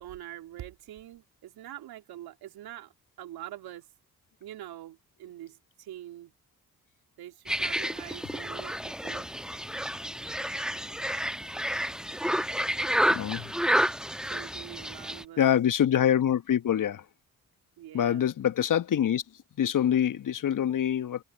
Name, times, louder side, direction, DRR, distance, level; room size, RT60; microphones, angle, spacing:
voice 1, 0.0-2.9 3.2-3.9 4.4-6.3 7.2-9.3 14.2-15.6 17.8-18.3, right 13 dB, 70° right, 3.2 m, -44 dB
sound 1, 7.5-15.2, equal, ahead, 1.1 m, -30 dB
voice 2, 13.1-13.5 15.4-17.0 17.9-19.2 19.6-21.2, left 10 dB, 50° left, 1.4 m, -25 dB
hypercardioid pair, 40°, 39 cm